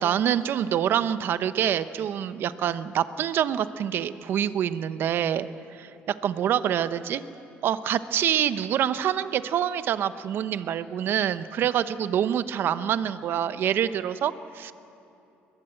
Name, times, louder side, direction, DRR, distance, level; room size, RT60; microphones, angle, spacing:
voice 1, 0.0-7.2 7.6-14.7, right 10 dB, 60° right, 13 dB, 0.8 m, -26 dB
21.5 x 20.0 x 7.9 m, 2.7 s
cardioid pair, 110°, 4 cm